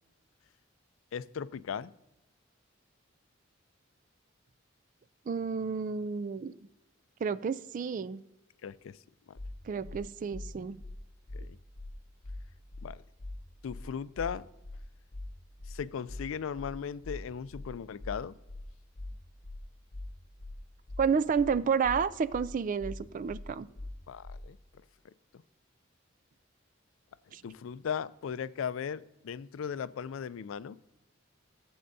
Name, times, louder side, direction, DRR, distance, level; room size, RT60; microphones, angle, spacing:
voice 1, 1.1-1.9 8.6-9.0 9.3-9.4 11.3-11.6 12.8-13.0 13.6-14.4 15.7-18.3 24.1-24.6 25.3-25.4 27.4-30.8, left 7 dB, 85° left, 17 dB, 0.4 m, -37 dB
voice 2, 5.3-6.5 7.2-8.2 9.7-10.8 21.0-23.7 27.3-27.4, right 6 dB, 40° right, 17 dB, 0.3 m, -30 dB
sound 1, 9.4-9.5 9.8-10.0 10.3-10.5 10.8-11.0 11.3-11.4 11.8-11.9 12.2-12.4 12.7-12.9 13.2-13.4 13.7-13.8 14.2-14.3 14.6-14.8 15.1-15.3 15.6-15.8 16.1-16.2 16.6-16.7 17.0-17.2 17.5-17.7 18.0-18.2 18.5-18.6 19.0-19.1 19.4-19.6 19.9-20.1 20.4-20.6 20.9-21.0 21.4-21.5 21.8-22.0 22.3-22.5 22.8-23.0 23.3-23.4 23.8-23.9 24.2-24.4, left 2 dB, 60° left, 0.9 m, -41 dB
15.0 x 7.8 x 2.7 m, 0.94 s
head